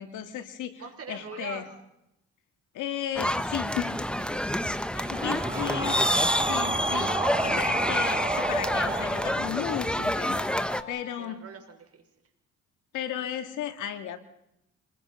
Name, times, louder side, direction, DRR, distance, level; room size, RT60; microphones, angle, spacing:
voice 1, 0.0-0.7 1.1-1.6 2.7-4.0 4.9-6.0 6.5-11.4 12.9-14.2, left 10 dB, 90° left, 8 dB, 2.3 m, -34 dB
voice 2, 0.7-1.6 4.1-5.7 6.2-6.3 11.2-12.0, right 6 dB, 50° right, 3 dB, 6.4 m, -44 dB
sound 1, 3.2-10.8, equal, 5° left, 1.3 m, -28 dB
sound 2, 4.0-10.1, right 3 dB, 15° right, 1.9 m, -33 dB
Wind instrument woodwind instrument, 7.6-11.3, left 6 dB, 40° left, 3.3 m, -45 dB
27.5 x 21.5 x 5.7 m, 0.82 s
cardioid pair, 90°, 30 cm